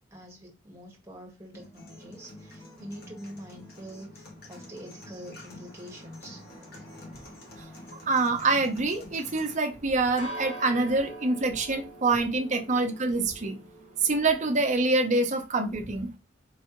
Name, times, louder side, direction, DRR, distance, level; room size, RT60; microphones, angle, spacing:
voice 1, 0.1-6.4, equal, 15° right, 0 dB, 1.5 m, -45 dB
sound 1, 1.5-9.5, left 2 dB, 55° left, 1.1 m, -48 dB
sound 2, 1.9-15.2, right 2 dB, 30° left, 2.2 m, -47 dB
voice 2, 8.1-13.6 14.0-16.1, right 3 dB, 40° right, 5 dB, 0.8 m, -25 dB
4.7 x 3.3 x 3.0 m, 0.28 s
head